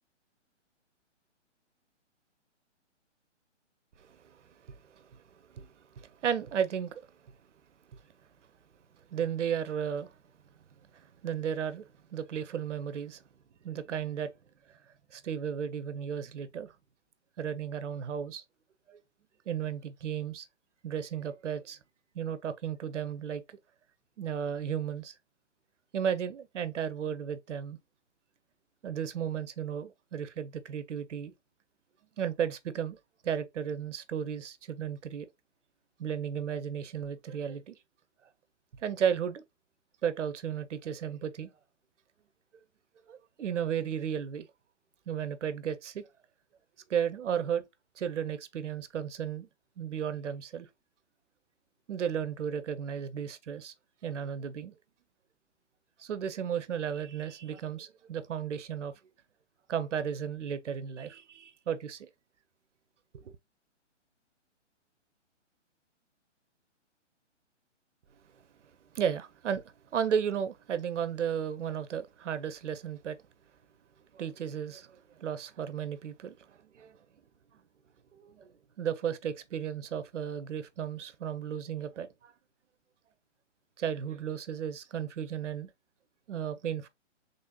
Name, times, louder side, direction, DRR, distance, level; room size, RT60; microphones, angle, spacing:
voice 1, 4.0-5.2 5.5-7.1 7.9-8.0 9.1-10.2 10.9-13.2 13.6-14.3 15.1-16.7 17.4-18.4 18.9-19.0 19.5-20.5 20.8-21.8 22.1-23.6 24.2-25.1 25.9-27.8 28.8-31.3 32.2-33.0 33.2-35.3 36.0-37.8 38.8-39.4 40.0-41.5 43.1-44.5 45.1-46.1 46.9-47.6 48.0-49.5 49.8-50.7 51.9-53.7 54.0-54.7 56.0-58.9 59.7-62.1 63.1-63.4 68.9-69.6 69.9-73.2 74.1-77.0 78.1-78.5 78.8-82.3 83.8-85.7 86.3-86.9, right 8 dB, 70° right, 0.6 m, -34 dB
3.9 x 3.3 x 2.2 m
hypercardioid pair, 140°, 37 cm